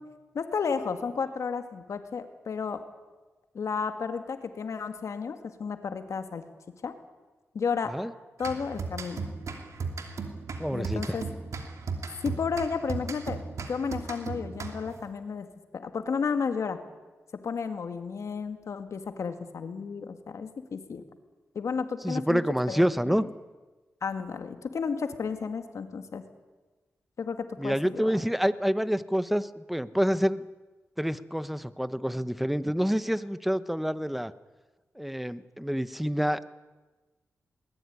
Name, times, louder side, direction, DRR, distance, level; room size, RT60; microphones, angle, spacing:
voice 1, 0.3-2.8 3.5-6.4 6.8-6.9 7.5-7.9 8.4-9.2 10.7-11.2 12.2-13.4 13.7-15.5 15.7-16.8 17.4-21.0 21.5-22.4 22.7-23.2 24.0-26.2 27.2-28.1, left 5 dB, 70° left, 8 dB, 2.3 m, -32 dB
sound 1, 8.4-15.1, right 4 dB, 75° right, 2.9 m, -36 dB
voice 2, 10.6-11.2 22.0-23.2 27.6-30.5 31.0-34.3 34.9-36.5, equal, ahead, 14 dB, 1.0 m, -27 dB
21.0 x 19.5 x 9.7 m, 1.2 s
cardioid pair, 70°, 5 cm